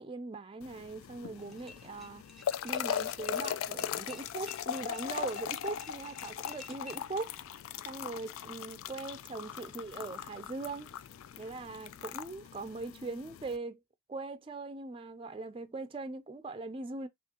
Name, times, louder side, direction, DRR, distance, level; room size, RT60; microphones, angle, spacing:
voice 1, 0.0-2.2 2.6-7.3 7.8-10.9 11.4-13.8 14.1-17.1, right 3 dB, 25° right, 0.4 m, -41 dB
sound 1, 0.6-13.6, left 9 dB, 80° left, 0.3 m, -39 dB
sound 2, 1.3-7.1, left 3 dB, ahead, 0.8 m, -52 dB
sound 3, 2.8-12.1, left 2 dB, 45° left, 0.9 m, -63 dB
5.8 x 2.5 x 2.8 m
head